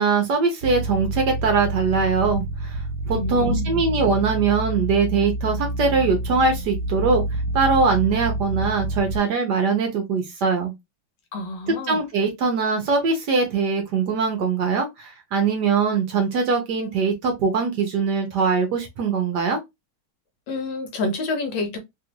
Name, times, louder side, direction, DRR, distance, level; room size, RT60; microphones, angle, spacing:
voice 1, 0.0-2.8 3.1-7.2 7.5-10.7 11.9-19.6, right 4 dB, 65° right, 1.2 m, -22 dB
sound 1, 0.6-9.2, right 2 dB, 85° right, 1.4 m, -28 dB
voice 2, 3.1-3.8 11.3-12.0 20.5-21.8, left 2 dB, 70° left, 1.4 m, -28 dB
3.4 x 2.5 x 2.8 m
omnidirectional pair, 2.3 m